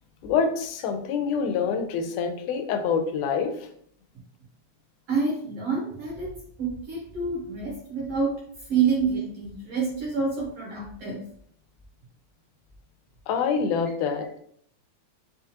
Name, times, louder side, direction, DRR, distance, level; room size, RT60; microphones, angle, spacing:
voice 1, 0.2-3.7 13.3-14.3, left 6 dB, 90° left, 6 dB, 2.1 m, -26 dB
voice 2, 5.1-6.3 6.6-8.3 8.7-11.2, right 5 dB, 65° right, -3 dB, 1.6 m, -27 dB
5.5 x 2.4 x 2.8 m, 0.63 s
omnidirectional pair, 3.5 m